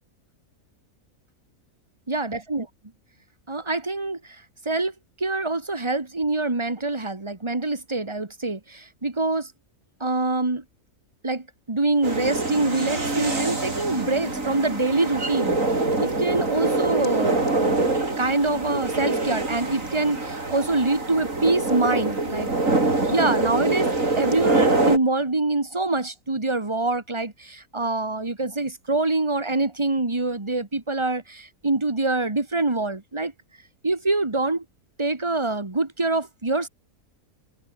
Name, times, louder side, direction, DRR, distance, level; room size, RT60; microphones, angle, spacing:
voice 1, 2.1-2.7 3.5-4.4 4.7-4.9 5.2-9.5 10.0-10.6 11.2-15.6 16.0-17.9 18.2-22.6 23.1-23.9 24.2-33.3 33.8-34.6 35.0-36.7, right 2 dB, 20° right, 1.9 m, -25 dB
sound 1, 12.0-25.0, right 2 dB, 60° right, 4.8 m, -24 dB
omnidirectional pair, 1.6 m